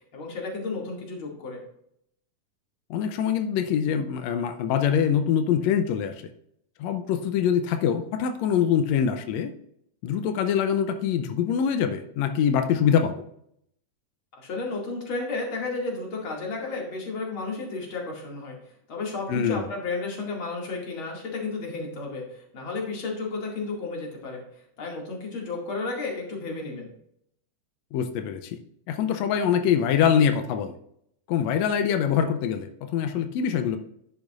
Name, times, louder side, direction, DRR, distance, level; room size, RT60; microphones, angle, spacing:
voice 1, 0.1-1.6 14.4-18.6 18.9-24.4 24.8-26.9, left 3 dB, 40° left, -1 dB, 2.6 m, -32 dB
voice 2, 2.9-6.2 6.8-9.5 10.0-13.2 19.3-19.6 27.9-28.6 28.9-30.8 31.3-33.8, left 8 dB, 90° left, 8 dB, 1.5 m, -24 dB
10.5 x 8.3 x 2.4 m, 0.72 s
omnidirectional pair, 3.9 m